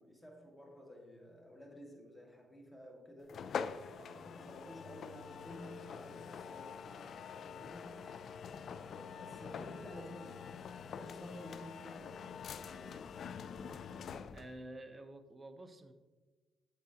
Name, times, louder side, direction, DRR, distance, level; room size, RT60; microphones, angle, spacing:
voice 1, 0.0-3.4 3.9-8.0 9.0-13.0, equal, 5° left, 0 dB, 1.8 m, -53 dB
sound 1, 3.3-14.6, left 6 dB, 60° left, 0.4 m, -45 dB
voice 2, 14.3-15.9, right 1 dB, 25° right, 8 dB, 0.8 m, -50 dB
8.9 x 8.4 x 2.8 m, 1.3 s
cardioid pair, 90°, 0 cm